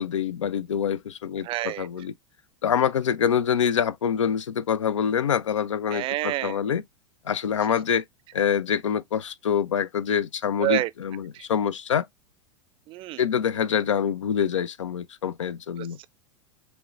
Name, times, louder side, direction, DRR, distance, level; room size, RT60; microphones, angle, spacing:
voice 1, 0.0-2.1 2.6-6.8 7.2-8.0 8.3-12.1 13.2-16.0, left 8 dB, 90° left, 0.4 m, -25 dB
voice 2, 1.4-1.9 5.9-6.6 10.6-10.9 11.3-11.4 12.9-13.2 15.8-16.1, right 17 dB, 35° right, 0.4 m, -28 dB
5.5 x 2.1 x 2.4 m
hypercardioid pair, 100°, 15 cm